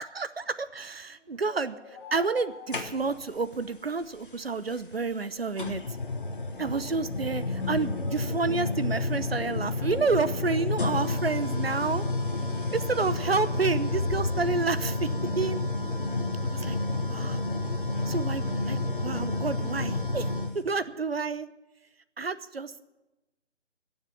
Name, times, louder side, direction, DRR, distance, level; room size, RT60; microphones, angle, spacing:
voice 1, 0.0-1.7 2.1-5.8 6.6-12.0 12.7-15.1 15.4-15.6 16.4-16.8 17.1-17.4 18.1-20.3 20.5-21.5 22.2-22.7, right 4 dB, 55° right, 14 dB, 0.7 m, -29 dB
sound 1, 1.2-4.1, left 4 dB, 25° left, 2.0 m, -48 dB
sound 2, 2.7-3.3 4.7-4.8 5.6-20.6, left 2 dB, 45° left, 1.2 m, -30 dB
15.5 x 7.4 x 9.5 m, 1.0 s
figure-of-eight pair, 175°, 36 cm